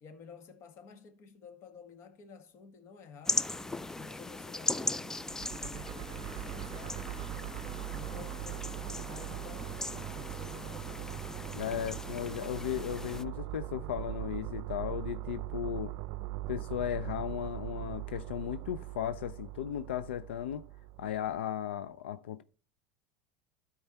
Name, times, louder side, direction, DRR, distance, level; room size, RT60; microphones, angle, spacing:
voice 1, 0.0-3.5 3.9-7.1 7.8-11.5, left 6 dB, 50° left, 1.7 m, -53 dB
sound 1, 3.3-13.2, left 2 dB, 10° left, 0.4 m, -38 dB
sound 2, 5.2-21.4, right 16 dB, 60° right, 0.5 m, -41 dB
voice 2, 11.5-15.9 16.5-20.6 21.0-22.4, left 10 dB, 80° left, 0.5 m, -36 dB
12.5 x 4.7 x 4.2 m
hypercardioid pair, 90°, 6 cm